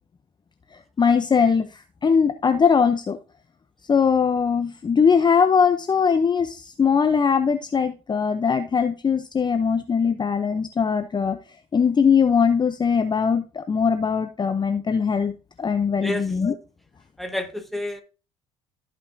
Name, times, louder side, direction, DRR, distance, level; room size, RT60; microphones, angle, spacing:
voice 1, 1.0-3.2 3.8-11.4 11.7-15.3 15.6-16.5, left 6 dB, 25° left, 0.7 m, -21 dB
voice 2, 16.0-16.3 17.2-18.0, left 1 dB, ahead, 1.6 m, -29 dB
14.5 x 5.3 x 2.7 m
hypercardioid pair, 65°, 16 cm